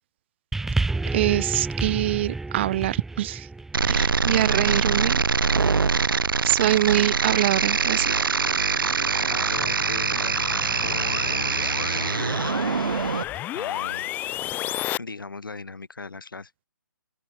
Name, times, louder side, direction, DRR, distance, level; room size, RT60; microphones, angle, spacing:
sound 1, 0.5-5.1 5.9-6.0, right 3 dB, 5° right, 1.2 m, -30 dB
voice 1, 1.1-3.5 3.9-5.2 6.4-8.1, right 14 dB, 30° right, 1.9 m, -24 dB
sound 2, 3.7-13.2, right 5 dB, 80° right, 0.5 m, -24 dB
sound 3, 8.7-15.0, left 14 dB, 15° left, 4.5 m, -33 dB
voice 2, 9.3-12.9 13.5-14.1 15.0-16.5, left 3 dB, 75° left, 5.0 m, -38 dB
open air
figure-of-eight pair, 145°, 11 cm